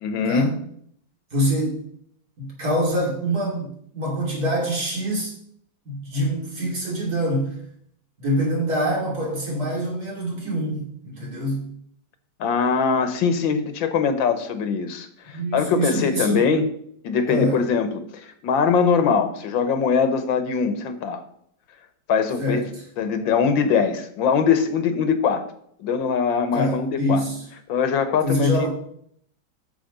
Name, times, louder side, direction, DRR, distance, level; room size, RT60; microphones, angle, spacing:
voice 1, 0.0-0.6 12.4-16.7 17.0-21.2 22.1-22.6 23.0-25.5 25.8-27.2 27.7-28.7, left 6 dB, 85° left, 9 dB, 1.8 m, -22 dB
voice 2, 1.3-1.8 2.4-3.7 3.9-5.3 5.9-7.6 8.2-11.7 15.3-16.5 17.3-17.6 22.4-22.7 26.5-27.4 28.2-28.7, equal, 50° right, -2 dB, 3.5 m, -25 dB
9.2 x 6.7 x 5.2 m, 0.67 s
omnidirectional pair, 2.0 m